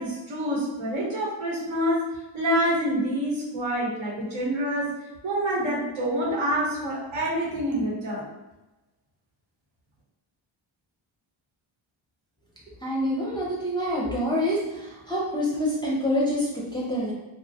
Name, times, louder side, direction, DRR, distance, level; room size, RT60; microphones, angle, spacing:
voice 1, 0.0-2.0 2.3-4.9 5.2-8.2, equal, 70° right, -3 dB, 1.1 m, -27 dB
voice 2, 12.8-14.6 15.1-17.1, equal, 10° left, -6 dB, 0.5 m, -26 dB
2.8 x 2.0 x 2.7 m, 1.0 s
cardioid pair, 110°, 48 cm